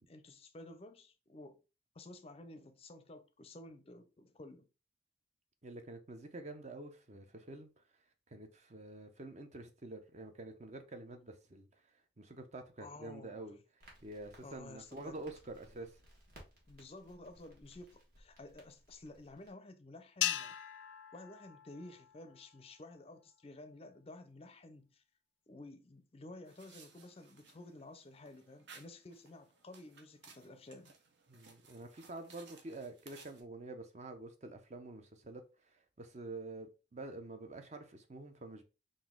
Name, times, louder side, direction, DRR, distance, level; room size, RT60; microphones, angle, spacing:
voice 1, 0.1-1.6 1.9-4.7 12.8-13.5 14.4-15.2 16.7-20.6 21.1-25.0 25.5-30.9, left 2 dB, 30° left, 0.5 m, -52 dB
voice 2, 5.6-16.0 31.3-38.6, right 2 dB, 40° right, 0.6 m, -48 dB
Crackle, 13.8-19.5, right 1 dB, 55° right, 1.5 m, -61 dB
Gas-bottle - Clang, 20.2-22.6, left 12 dB, 90° left, 0.4 m, -39 dB
sound 1, 26.5-33.4, right 4 dB, 70° right, 0.8 m, -60 dB
4.0 x 2.5 x 3.6 m
head